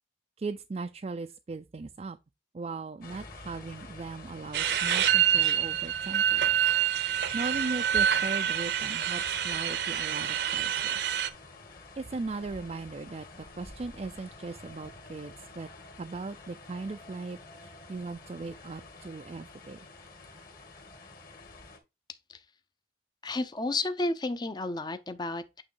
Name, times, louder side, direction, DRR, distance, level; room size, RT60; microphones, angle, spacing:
voice 1, 0.4-2.2 2.5-6.4 7.3-11.0 12.0-15.7 16.0-19.8, right 3 dB, 35° right, 0.3 m, -38 dB
sound 1, 3.0-21.8, left 2 dB, 50° left, 2.3 m, -49 dB
sound 2, 4.5-11.3, right 9 dB, 65° right, 0.7 m, -27 dB
voice 2, 23.2-25.6, left 2 dB, 25° left, 0.6 m, -32 dB
8.6 x 3.1 x 4.6 m
head